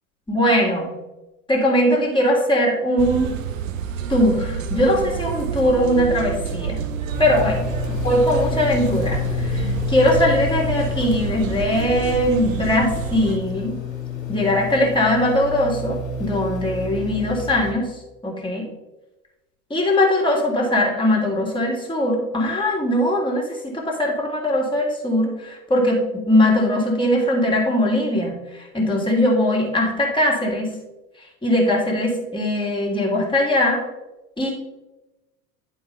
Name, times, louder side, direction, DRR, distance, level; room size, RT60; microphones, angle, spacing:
voice 1, 0.3-0.9 1.5-3.3 4.1-6.8 7.2-7.6 8.0-13.7 14.3-17.9 18.2-18.7 19.7-30.7 31.4-33.8 34.4-34.5, left 1 dB, 10° left, -1 dB, 2.4 m, -20 dB
sound 1, 3.0-13.4, right 7 dB, 70° right, 0.8 m, -28 dB
sound 2, 7.1-17.7, left 5 dB, 70° left, 1.7 m, -29 dB
11.0 x 4.8 x 3.4 m, 0.99 s
figure-of-eight pair, 75°, 42 cm